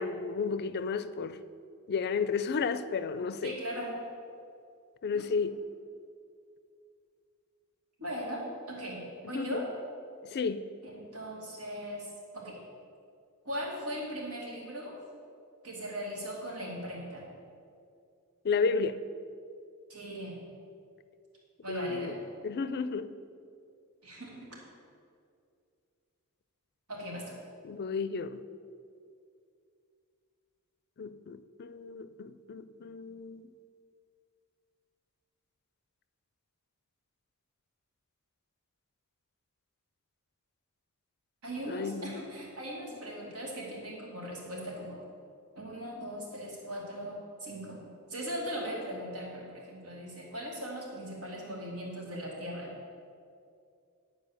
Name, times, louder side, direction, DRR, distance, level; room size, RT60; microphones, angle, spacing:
voice 1, 0.0-1.4 1.9-3.6 5.0-5.6 9.3-9.6 10.3-10.6 18.4-19.0 21.7-22.1 22.4-23.1 27.6-28.4 31.0-33.5 41.7-42.2, left 5 dB, 45° left, 0.4 m, -32 dB
voice 2, 3.4-4.0 5.1-5.3 8.0-9.0 9.3-9.6 10.8-12.6 13.4-15.0 15.6-17.2 19.9-20.4 21.6-22.1 24.0-24.6 26.9-27.4 41.4-45.0 45.6-52.7, equal, 90° right, 2.4 m, -39 dB
10.0 x 4.5 x 6.8 m
head